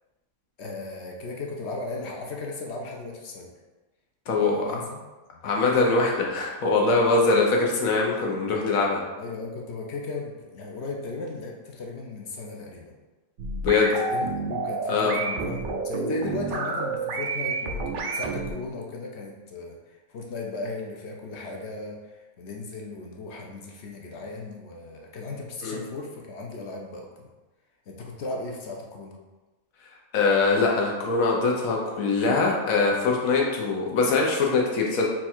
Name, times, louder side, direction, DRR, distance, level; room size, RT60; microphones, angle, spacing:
voice 1, 0.6-3.5 4.4-5.0 5.3-5.4 9.2-12.9 13.9-15.6 15.8-17.8 18.1-27.3 27.9-29.2, left 3 dB, 60° left, 0 dB, 0.8 m, -36 dB
voice 2, 4.3-4.7 5.4-9.0 13.6-13.9 14.9-15.2 25.6-25.8 30.1-35.1, left 3 dB, 85° left, -1 dB, 1.2 m, -22 dB
sound 1, 13.4-18.5, right 3 dB, 70° right, 0.5 m, -29 dB
4.4 x 2.4 x 4.3 m, 1.2 s
omnidirectional pair, 1.4 m